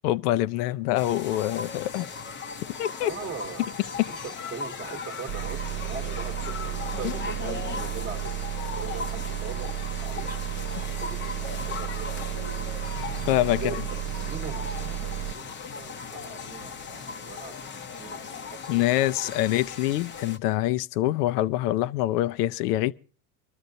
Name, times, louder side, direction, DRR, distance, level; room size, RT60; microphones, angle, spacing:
voice 1, 0.0-2.1 2.8-3.1 7.0-7.1 13.3-13.8 18.7-22.9, left 15 dB, 70° left, 0.7 m, -25 dB
sound 1, 1.0-20.4, left 5 dB, 25° left, 0.7 m, -37 dB
voice 2, 3.0-3.7 4.1-9.7 10.0-10.4 10.8-12.8 13.5-18.9, right 5 dB, 20° right, 1.1 m, -41 dB
sound 2, 5.3-15.3, right 13 dB, 60° right, 1.0 m, -33 dB
24.5 x 13.0 x 2.7 m
hypercardioid pair, 95°, 48 cm